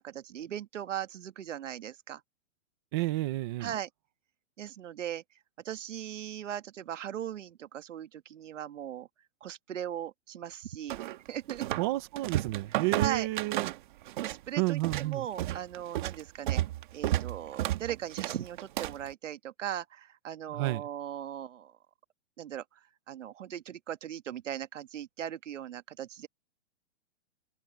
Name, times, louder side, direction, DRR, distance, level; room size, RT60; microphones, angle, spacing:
voice 1, 0.0-2.2 3.6-3.9 4.6-5.2 5.6-9.1 9.4-11.0 11.3-11.7 12.9-13.3 14.2-16.6 16.9-21.7 22.4-26.3, right 10 dB, 85° right, 1.7 m, -38 dB
voice 2, 2.9-3.7 11.8-13.7 14.6-15.3 20.5-20.8, right 19 dB, 20° right, 0.7 m, -30 dB
sound 1, 10.9-11.9 12.2-14.4 14.7-19.1, right 14 dB, 40° right, 1.5 m, -32 dB
hypercardioid pair, 170°, 36 cm